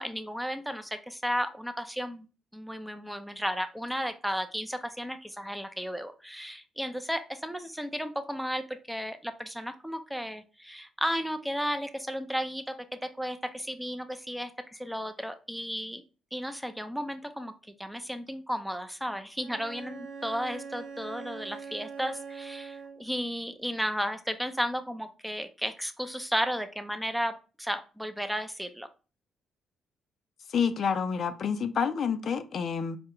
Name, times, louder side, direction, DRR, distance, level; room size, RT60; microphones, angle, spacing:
voice 1, 0.0-2.3 2.5-16.0 16.3-17.5 17.8-28.9, equal, ahead, 8 dB, 0.4 m, -34 dB
Bowed string instrument, 19.4-23.2, right 5 dB, 75° right, 0.6 m, -42 dB
voice 2, 30.5-33.0, left 6 dB, 55° left, 9 dB, 0.4 m, -28 dB
4.3 x 2.1 x 3.6 m, 0.34 s
cardioid pair, 90°, 0 cm